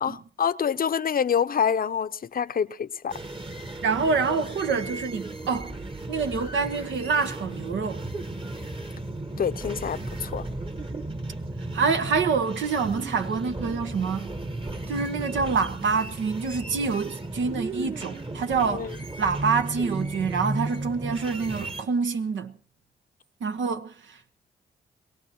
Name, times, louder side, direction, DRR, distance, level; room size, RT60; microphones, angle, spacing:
voice 1, 0.0-3.1 9.4-10.4 18.7-19.0, left 7 dB, 50° left, 0.7 m, -26 dB
sound 1, 3.1-21.8, right 2 dB, 25° right, 1.4 m, -35 dB
voice 2, 3.8-5.8 6.1-8.0 11.7-14.4 14.9-22.6 23.4-24.3, right 5 dB, 75° right, 1.1 m, -26 dB
23.0 x 17.5 x 3.0 m
supercardioid pair, 45°, 20 cm